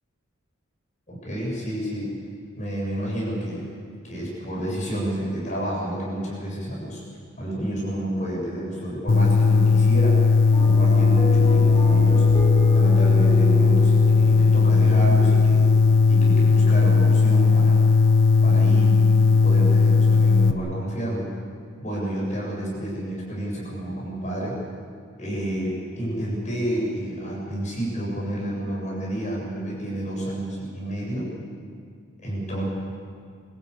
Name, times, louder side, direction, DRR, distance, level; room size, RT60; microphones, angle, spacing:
voice 1, 1.1-2.1 2.6-3.6 4.0-7.0 7.4-10.2 10.6-12.2 12.7-15.6 16.0-17.8 18.4-21.3 21.8-24.6 25.2-31.3 32.2-32.6, right 1 dB, 35° left, -5 dB, 7.9 m, -30 dB
sound 1, 9.1-20.5, left 4 dB, 60° left, 1.0 m, -17 dB
sound 2, 10.5-15.9, left 1 dB, 15° left, 3.7 m, -32 dB
25.5 x 15.5 x 8.7 m, 2.1 s
head